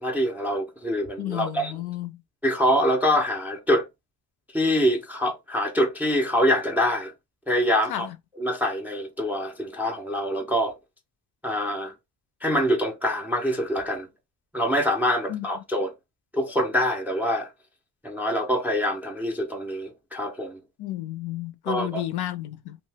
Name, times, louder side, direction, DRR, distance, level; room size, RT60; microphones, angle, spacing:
voice 1, 0.0-1.7 2.4-3.9 4.5-7.1 7.5-8.1 8.4-10.7 11.4-11.9 12.4-14.1 14.5-15.9 16.3-17.5 18.0-20.6 21.7-22.0, equal, 5° right, 0.3 m, -25 dB
voice 2, 1.2-2.2 7.9-8.2 15.3-15.5 20.8-22.8, left 14 dB, 65° left, 0.5 m, -32 dB
2.6 x 2.1 x 3.2 m
cardioid pair, 145°, 42 cm